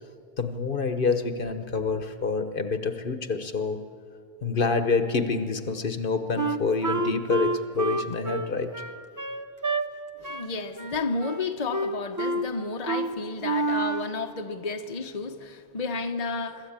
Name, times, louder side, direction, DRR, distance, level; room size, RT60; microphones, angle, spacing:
voice 1, 0.4-3.8 4.4-8.7, left 4 dB, 55° left, 9 dB, 1.2 m, -27 dB
Wind instrument woodwind instrument, 6.4-9.8 10.2-10.5 10.8-11.4 11.7-12.5 12.9-13.1 13.4-14.1, right 2 dB, 20° right, 0.8 m, -28 dB
voice 2, 10.2-16.7, left 4 dB, 40° left, 4 dB, 1.0 m, -32 dB
24.0 x 14.0 x 8.8 m, 2.4 s
omnidirectional pair, 1.1 m